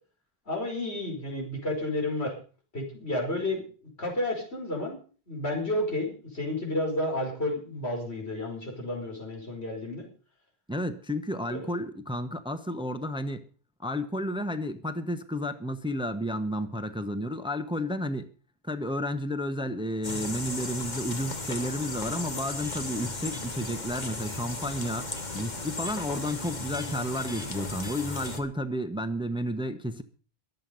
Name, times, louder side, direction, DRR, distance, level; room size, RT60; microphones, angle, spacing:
voice 1, 0.5-2.3 2.7-3.6 4.0-5.0 5.3-10.1 11.5-11.6, left 1 dB, 85° left, 0 dB, 5.5 m, -31 dB
voice 2, 10.7-13.4 13.8-18.3 18.6-30.0, equal, 5° right, 10 dB, 0.9 m, -32 dB
sound 1, 20.0-28.4, left 2 dB, 45° left, 1.8 m, -35 dB
22.5 x 8.0 x 5.5 m, 0.40 s
omnidirectional pair, 1.1 m